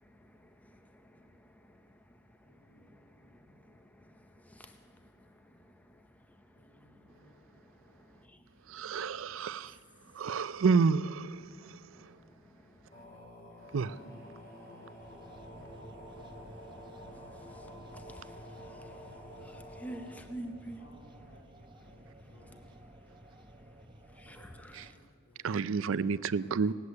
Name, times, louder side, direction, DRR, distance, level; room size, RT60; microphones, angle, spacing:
voice 1, 2.4-4.0 6.6-7.5 12.2-12.4 20.8-22.0 22.3-22.7 24.2-26.0, left 1 dB, 85° left, -2 dB, 3.8 m, -63 dB
voice 2, 8.7-9.7 10.1-11.4 13.7-13.9 24.7-24.9 25.4-26.7, right 5 dB, 70° right, 16 dB, 0.4 m, -29 dB
sound 1, 12.9-20.1, equal, 40° left, 3.9 m, -49 dB
sound 2, 15.0-24.9, right 1 dB, 20° right, 0.9 m, -53 dB
voice 3, 17.9-18.3 19.4-20.8 24.2-24.9, right 1 dB, 5° left, 7 dB, 0.6 m, -44 dB
18.0 x 8.1 x 9.6 m, 2.2 s
head